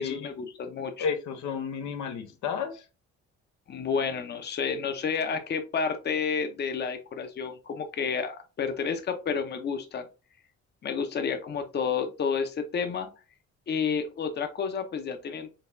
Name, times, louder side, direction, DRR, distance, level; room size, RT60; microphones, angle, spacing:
voice 1, 0.0-1.1 3.7-10.1 10.8-13.1 13.7-15.5, left 6 dB, 35° left, 7 dB, 0.7 m, -30 dB
voice 2, 1.0-2.8, left 6 dB, 90° left, 6 dB, 0.8 m, -32 dB
3.9 x 3.4 x 2.6 m, 0.31 s
cardioid pair, 120°, 29 cm